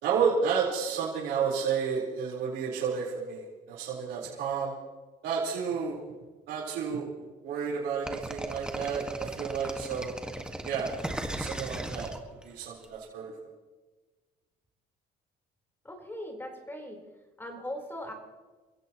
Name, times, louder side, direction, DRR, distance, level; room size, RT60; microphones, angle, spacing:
voice 1, 0.0-4.7 5.2-6.0 6.5-7.1 7.4-10.1 10.6-10.9 11.2-12.1 12.4-13.3, right 6 dB, 85° right, -5 dB, 4.3 m, -31 dB
sound 1, 8.1-12.8, right 1 dB, 5° right, 1.6 m, -37 dB
voice 2, 15.8-17.0 17.4-18.1, left 1 dB, 15° left, 1 dB, 4.2 m, -39 dB
29.5 x 16.0 x 3.1 m, 1.3 s
cardioid pair, 110°, 17 cm